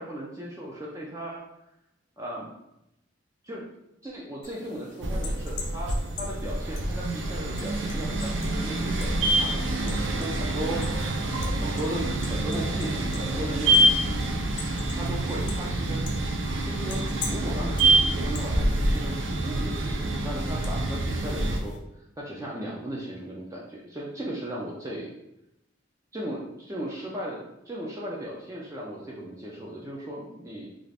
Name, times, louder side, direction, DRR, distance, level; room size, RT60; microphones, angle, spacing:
voice 1, 0.0-1.4 2.2-2.5 3.4-3.7 4.0-10.8 11.6-14.0 14.9-16.0 16.6-21.7 22.2-25.1 26.1-30.7, right 1 dB, 15° right, -4 dB, 0.4 m, -37 dB
sound 1, 4.4-21.8, left 3 dB, 65° left, 0.5 m, -44 dB
sound 2, 5.0-21.6, right 1 dB, 75° right, 0.4 m, -26 dB
2.5 x 2.4 x 3.2 m, 0.85 s
head